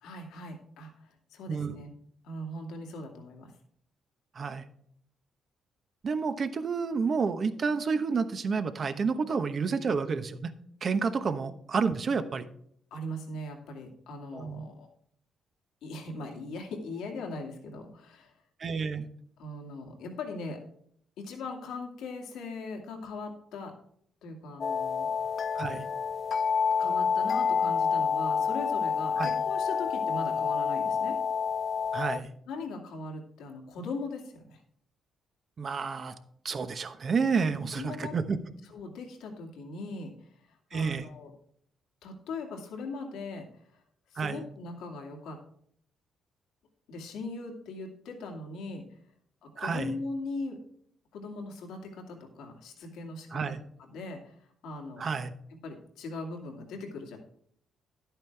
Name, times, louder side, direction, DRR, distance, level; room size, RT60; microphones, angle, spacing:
voice 1, 0.0-1.9 2.2-3.5 12.9-14.9 15.8-18.3 19.4-20.6 21.2-23.7 24.2-25.4 26.8-31.2 32.5-34.6 37.7-38.2 38.7-41.3 42.0-43.8 44.1-45.4 46.9-48.8 49.4-50.6 51.1-54.4 54.6-55.3 55.6-57.2, left 2 dB, 85° left, 2 dB, 2.3 m, -40 dB
voice 2, 1.5-1.8 4.3-4.6 6.0-10.5 10.8-12.4 14.3-14.7 18.6-19.1 25.5-25.9 29.2-29.3 31.9-32.3 35.6-36.1 36.4-38.4 40.7-41.1 44.2-44.4 49.6-49.9 53.3-53.6 55.0-55.3, right 5 dB, 45° right, 9 dB, 1.0 m, -30 dB
sound 1, 24.6-32.2, left 6 dB, 50° left, 0.3 m, -28 dB
11.0 x 8.9 x 3.5 m, 0.66 s
cardioid pair, 90°, 0 cm